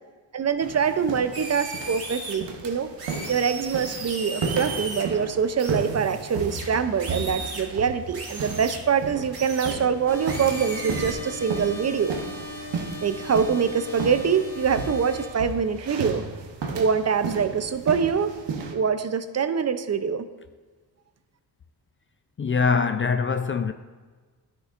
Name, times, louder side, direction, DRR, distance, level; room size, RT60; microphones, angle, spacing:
voice 1, 0.3-2.9 3.3-12.2 13.0-16.2 16.7-18.4 18.7-20.2, right 6 dB, 40° right, 0.5 m, -24 dB
sound 1, 0.6-18.8, right 4 dB, 80° right, 1.0 m, -35 dB
sound 2, 1.3-2.3 3.0-5.0 5.6-7.6 8.1-8.8 9.3-9.7 10.2-11.1, right 3 dB, 60° right, 2.3 m, -36 dB
sound 3, 10.1-15.3, left 1 dB, 55° left, 2.4 m, -38 dB
voice 2, 22.4-23.7, left 5 dB, 30° left, 0.4 m, -23 dB
10.5 x 6.5 x 2.5 m
cardioid pair, 70°, 42 cm